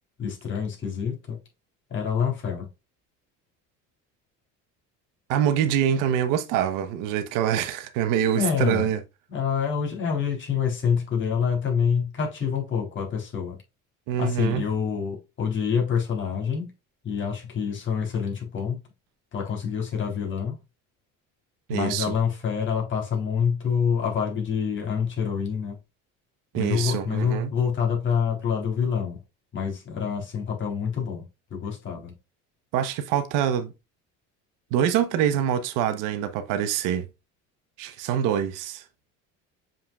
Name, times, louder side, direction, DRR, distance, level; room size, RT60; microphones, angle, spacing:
voice 1, 0.2-1.4 1.9-2.7 8.3-8.9 9.3-13.6 14.2-16.7 17.0-18.8 19.3-20.6 21.7-25.8 26.5-29.2 29.5-31.2 31.5-32.1, left 7 dB, 40° left, 3.8 m, -26 dB
voice 2, 5.3-9.0 14.1-14.6 21.7-22.1 26.5-27.5 32.7-33.7 34.7-37.1 37.8-38.8, right 9 dB, 80° right, 1.2 m, -25 dB
7.4 x 5.7 x 2.4 m
cardioid pair, 135°, 31 cm